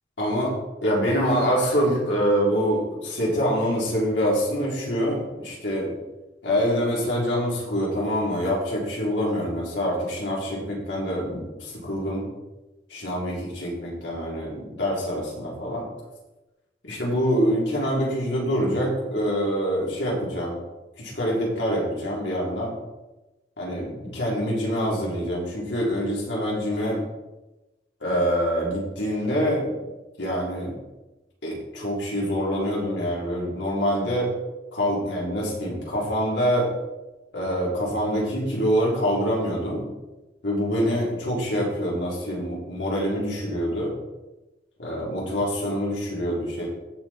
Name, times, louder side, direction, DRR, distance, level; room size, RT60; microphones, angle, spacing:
voice 1, 0.2-0.5 0.8-5.9 6.4-12.3 12.9-15.9 16.8-20.6 21.0-22.7 23.6-27.0 28.0-29.7 30.2-30.7 31.4-34.3 34.7-36.7 37.3-39.9 40.4-43.9 44.8-46.7, equal, 80° left, -4 dB, 4.0 m, -25 dB
16.0 x 5.3 x 4.5 m, 1.1 s
head